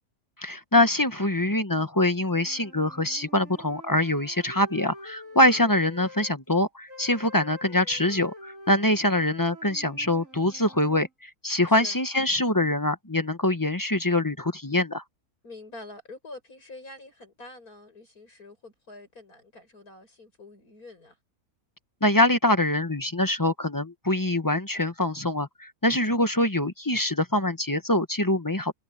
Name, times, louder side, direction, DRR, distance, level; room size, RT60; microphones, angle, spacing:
voice 1, 0.4-15.0 22.0-28.7, left 1 dB, 15° left, 1.0 m, -24 dB
sound 1, 2.2-6.4 6.9-11.1, equal, 55° right, 5.6 m, -47 dB
voice 2, 11.7-12.0 15.4-21.2, left 2 dB, 70° left, 7.9 m, -46 dB
omnidirectional pair, 1.6 m